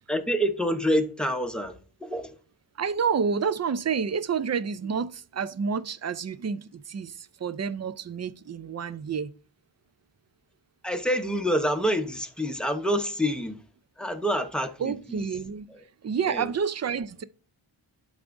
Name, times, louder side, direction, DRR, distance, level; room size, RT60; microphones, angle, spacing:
voice 1, 0.1-2.3 10.8-13.6 14.0-15.2 16.3-16.5, equal, ahead, 0.8 m, -27 dB
voice 2, 2.8-9.3 14.8-15.7 16.0-17.2, right 6 dB, 35° right, 0.4 m, -29 dB
11.5 x 4.9 x 2.6 m
wide cardioid pair, 75°, 48 cm